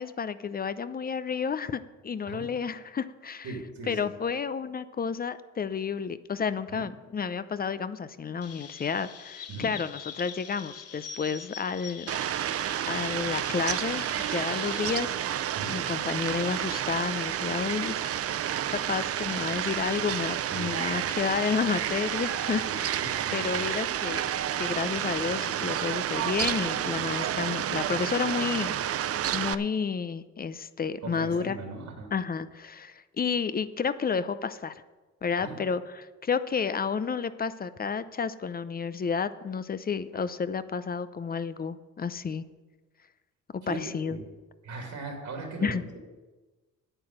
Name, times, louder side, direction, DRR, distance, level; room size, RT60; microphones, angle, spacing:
voice 1, 0.0-3.5 3.9-12.1 12.9-14.0 14.3-15.4 15.7-18.1 18.7-24.2 24.6-28.8 29.3-31.6 32.1-34.7 35.2-42.4 43.5-44.2 45.6-45.8, left 6 dB, 30° left, 14 dB, 0.6 m, -31 dB
voice 2, 3.4-4.1 6.7-6.9 9.5-9.7 15.5-15.8 20.5-21.0 22.7-23.6 26.9-27.4 31.0-32.1 35.4-35.6 40.1-40.2 43.6-44.2 44.6-46.0, right 3 dB, 70° right, 2 dB, 2.8 m, -39 dB
Chirp tweet, 8.4-15.0, left 7 dB, 55° left, 1.0 m, -44 dB
Fowl, 12.1-29.6, right 10 dB, 50° right, 0.5 m, -30 dB
9.5 x 9.0 x 6.5 m, 1.2 s
cardioid pair, 90°, 30 cm